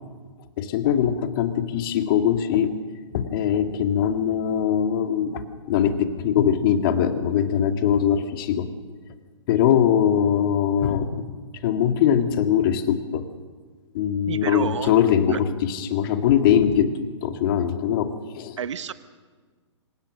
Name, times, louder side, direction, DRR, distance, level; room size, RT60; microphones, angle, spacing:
voice 1, 0.6-2.8 3.1-8.7 9.5-11.3 11.6-13.3 13.9-18.6, left 9 dB, 45° left, 7 dB, 2.0 m, -22 dB
voice 2, 14.3-14.9 15.3-15.4 18.6-18.9, right 8 dB, 75° right, 13 dB, 1.0 m, -29 dB
26.5 x 17.5 x 6.3 m, 1.5 s
hypercardioid pair, 130°, 16 cm